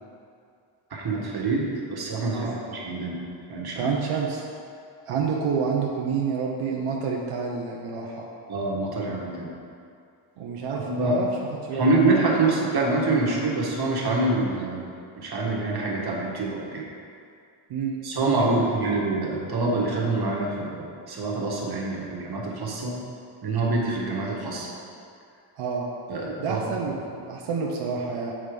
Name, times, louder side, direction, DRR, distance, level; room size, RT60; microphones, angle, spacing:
voice 1, 0.9-3.2 3.5-3.9 8.5-9.5 10.7-11.2 11.7-14.9 15.2-16.8 18.0-22.9 23.4-24.7 26.1-26.6, right 2 dB, 50° right, -3 dB, 1.6 m, -26 dB
voice 2, 3.8-4.4 5.1-8.3 10.4-11.9 17.7-18.8 25.6-25.9 26.4-28.3, right 5 dB, 90° right, -2 dB, 0.9 m, -29 dB
7.3 x 4.9 x 5.2 m, 2.4 s
cardioid pair, 110°, 50 cm